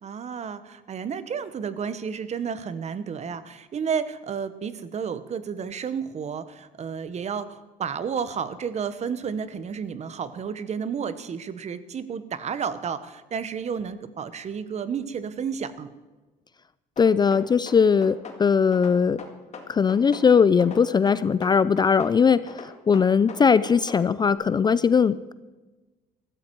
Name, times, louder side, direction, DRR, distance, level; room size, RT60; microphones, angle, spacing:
voice 1, 0.0-15.9, right 6 dB, 40° right, 13 dB, 1.0 m, -31 dB
sound 1, 17.0-18.4 18.7-20.3 20.6-22.2 22.5-24.0, left 5 dB, 40° left, 2.2 m, -40 dB
voice 2, 17.0-19.2 19.7-22.4 22.9-25.3, left 6 dB, 25° left, 16 dB, 0.4 m, -20 dB
15.5 x 14.0 x 4.6 m, 1.2 s
cardioid pair, 110°, 17 cm